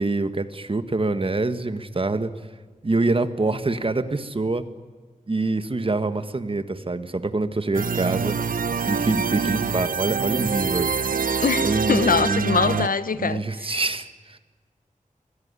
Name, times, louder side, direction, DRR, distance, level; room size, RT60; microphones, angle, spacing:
voice 1, 0.0-2.3 2.8-4.7 5.3-8.4 8.8-10.9 11.6-12.6 13.1-14.4, right 2 dB, 40° right, 1.6 m, -25 dB
sound 1, 7.7-12.9, right 5 dB, 85° right, 0.9 m, -25 dB
voice 2, 11.4-13.7, left 5 dB, 85° left, 1.0 m, -23 dB
24.5 x 17.0 x 9.8 m
wide cardioid pair, 85°, 14 cm